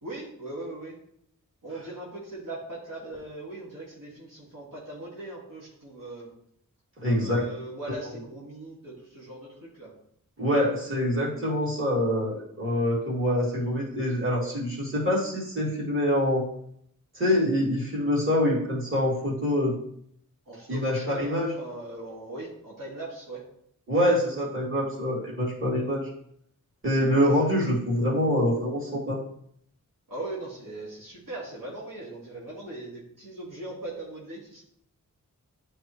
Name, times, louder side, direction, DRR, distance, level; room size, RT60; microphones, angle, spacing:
voice 1, 0.0-1.0 1.6-6.3 7.0-9.9 20.5-23.4 30.1-34.6, right 2 dB, 80° right, -6 dB, 1.8 m, -39 dB
voice 2, 7.0-7.4 10.4-16.5 17.1-19.8 20.7-21.5 23.9-26.1 26.8-29.2, equal, 40° right, -6 dB, 2.5 m, -25 dB
9.2 x 3.4 x 3.1 m, 0.69 s
cardioid pair, 50°, 33 cm